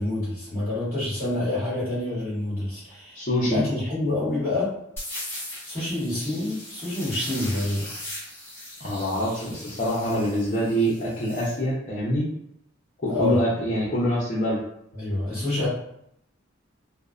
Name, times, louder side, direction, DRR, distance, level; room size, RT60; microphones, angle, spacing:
voice 1, 0.0-4.7 5.6-7.9 13.1-13.4 14.9-15.7, left 2 dB, 15° right, -15 dB, 1.2 m, -27 dB
voice 2, 3.1-3.6 8.8-12.3 13.0-14.6, equal, 40° left, -8 dB, 0.6 m, -25 dB
sound 1, 5.0-11.5, left 1 dB, 10° left, 0.9 m, -39 dB
2.6 x 2.0 x 2.3 m, 0.75 s
head